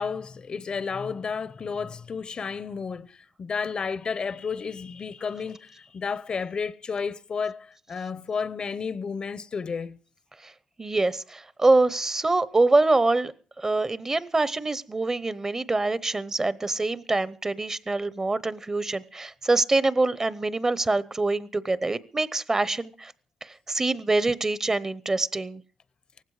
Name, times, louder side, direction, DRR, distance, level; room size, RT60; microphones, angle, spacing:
voice 1, 0.0-10.0, left 5 dB, 50° left, 0.8 m, -32 dB
voice 2, 10.8-23.1 23.4-25.6, right 2 dB, 25° right, 0.8 m, -25 dB
18.5 x 16.0 x 4.9 m
cardioid pair, 100°, 2 cm